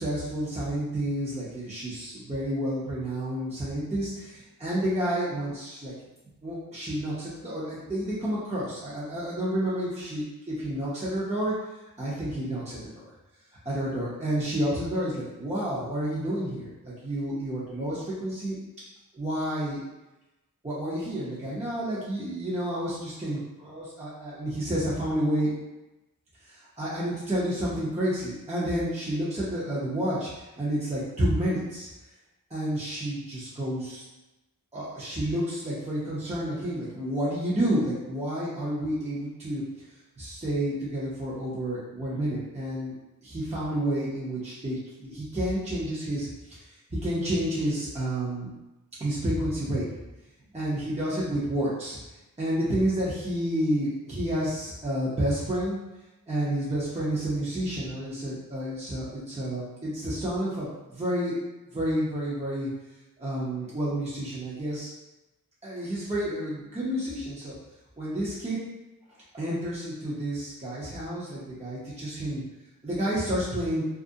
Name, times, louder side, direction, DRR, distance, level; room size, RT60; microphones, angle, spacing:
voice 1, 0.0-5.9 6.4-11.5 12.0-13.0 13.6-18.6 19.1-19.8 20.6-25.5 26.4-31.9 32.5-34.0 34.7-39.6 40.2-42.9 43.2-46.6 46.9-48.5 49.0-49.9 50.5-52.0 52.4-55.8 56.3-61.4 61.7-62.7 63.2-64.9 65.6-67.5 68.0-68.6 69.3-72.4 72.8-73.8, right 1 dB, 20° right, -9 dB, 0.6 m, -30 dB
2.4 x 2.0 x 2.6 m, 1.0 s
wide cardioid pair, 50°, 36 cm